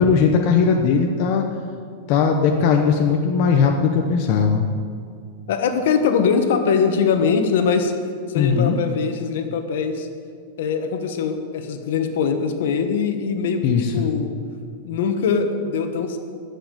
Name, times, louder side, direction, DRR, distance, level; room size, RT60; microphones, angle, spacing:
voice 1, 0.0-1.4 2.1-4.7 8.3-8.8 13.6-13.9, left 6 dB, 35° left, 2 dB, 0.9 m, -18 dB
voice 2, 5.5-7.9 8.3-10.1 10.6-14.3 14.8-16.2, left 6 dB, 65° left, 6 dB, 1.4 m, -22 dB
11.0 x 7.3 x 9.3 m, 2.2 s
supercardioid pair, 175°, 0 cm